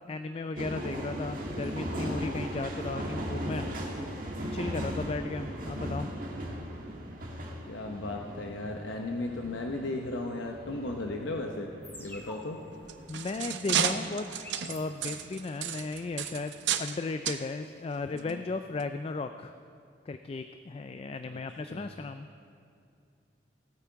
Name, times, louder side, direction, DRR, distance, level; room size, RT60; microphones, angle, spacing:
voice 1, 0.1-3.6 4.5-6.1 13.1-14.4 14.7-16.5 16.8-19.5 20.1-22.3, left 3 dB, 30° left, 9 dB, 0.3 m, -35 dB
sound 1, 0.6-14.6 14.9-16.4, equal, 50° right, 1.6 m, -38 dB
voice 2, 7.7-11.7 12.0-12.6 18.1-18.4 21.7-21.9, left 2 dB, 85° left, 2 dB, 0.9 m, -36 dB
sound 2, 11.8-15.5, left 1 dB, 10° left, 1.1 m, -49 dB
sound 3, 12.7-17.0 17.3-17.4 18.2-18.3 18.8-18.9, right 8 dB, 75° right, 0.6 m, -32 dB
18.0 x 8.5 x 4.6 m, 2.4 s
head